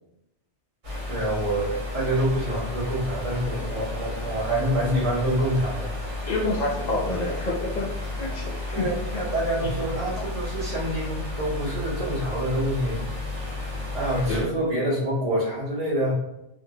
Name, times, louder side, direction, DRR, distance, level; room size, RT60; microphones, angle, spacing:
sound 1, 0.8-14.4, left 2 dB, 70° right, 1.5 m, -32 dB
voice 1, 1.1-5.9 8.7-13.0 13.3-13.6 13.9-16.1, right 1 dB, 45° right, -10 dB, 1.5 m, -27 dB
voice 2, 6.3-7.9 8.2-9.2 9.6-9.7 10.2-10.3 14.3-14.5, left 2 dB, 55° left, -2 dB, 0.5 m, -28 dB
2.8 x 2.6 x 2.6 m, 0.88 s
omnidirectional pair, 1.2 m